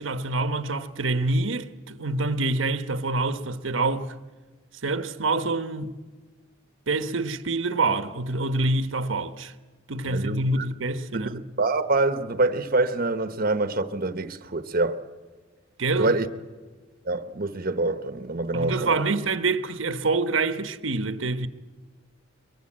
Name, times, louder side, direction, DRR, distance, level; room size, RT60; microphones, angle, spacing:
voice 1, 0.0-4.1 4.8-6.0 6.9-9.5 9.9-11.4 15.8-16.1 18.5-21.5, right 3 dB, 80° right, 1.1 m, -26 dB
voice 2, 10.1-10.7 11.1-15.0 16.0-16.3 17.0-19.0, right 2 dB, 45° right, 1.0 m, -26 dB
22.5 x 22.5 x 8.8 m
head